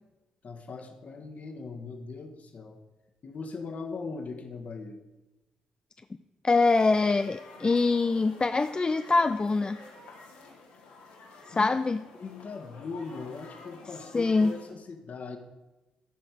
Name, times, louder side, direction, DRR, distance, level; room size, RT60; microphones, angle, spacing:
voice 1, 0.4-2.8 3.2-5.0 11.5-11.7 12.2-15.4, left 4 dB, 45° left, 5 dB, 1.6 m, -40 dB
voice 2, 6.4-9.8 11.5-12.0 14.1-14.5, left 3 dB, 25° left, 10 dB, 0.5 m, -24 dB
sound 1, 6.6-14.7, left 3 dB, 70° left, 2.0 m, -50 dB
14.0 x 5.9 x 6.9 m, 1.1 s
figure-of-eight pair, 40°, 3 cm